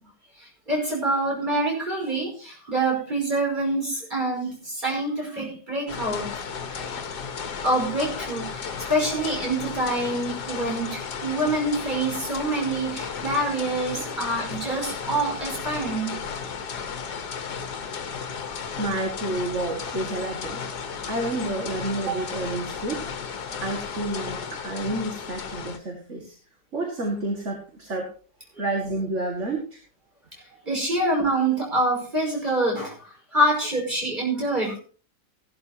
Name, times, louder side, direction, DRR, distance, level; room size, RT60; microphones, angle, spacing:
voice 1, 0.7-6.3 7.6-16.2 30.7-32.9 33.3-34.8, right 1 dB, 25° right, 0 dB, 5.5 m, -26 dB
sound 1, 5.9-25.8, left 6 dB, 75° left, 1.8 m, -34 dB
voice 2, 18.8-20.6 21.1-23.0 23.6-26.4 26.7-28.1 28.6-29.8, right 2 dB, 45° right, 1 dB, 2.5 m, -29 dB
17.0 x 12.0 x 2.9 m, 0.38 s
omnidirectional pair, 1.8 m